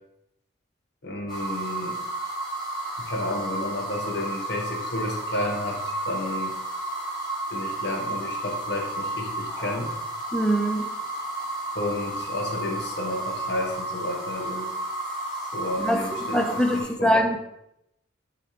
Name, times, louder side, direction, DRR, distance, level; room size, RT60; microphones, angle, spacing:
voice 1, 1.0-2.0 3.0-6.6 7.5-9.9 11.7-14.7 15.5-17.2, left 2 dB, 60° left, 1.1 m, -31 dB
sound 1, 1.3-16.8, right 2 dB, 25° left, 1.8 m, -32 dB
voice 2, 9.5-9.8 10.3-10.9 15.8-17.4, equal, 5° left, 0.4 m, -24 dB
6.3 x 3.0 x 5.0 m
head